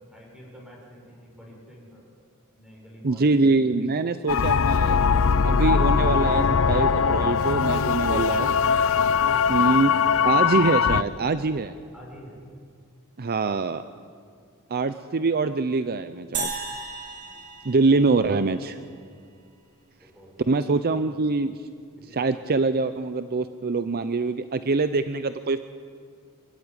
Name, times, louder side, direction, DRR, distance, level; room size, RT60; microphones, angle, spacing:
voice 1, 0.0-2.0 2.5-3.4 9.3-9.6 10.1-10.3 11.9-12.4 17.2-17.5 20.0-20.6 22.0-22.3, equal, 5° right, -3 dB, 6.9 m, -48 dB
voice 2, 3.0-5.0 5.4-8.5 9.5-9.9 10.3-11.7 13.2-13.8 14.7-16.6 17.6-18.8 20.5-21.6 22.1-25.6, right 3 dB, 45° right, 11 dB, 0.6 m, -24 dB
sound 1, 4.3-11.0, left 6 dB, 65° left, 0.6 m, -21 dB
sound 2, 16.3-18.8, right 4 dB, 80° right, 4.9 m, -34 dB
26.0 x 14.0 x 9.8 m, 2.2 s
head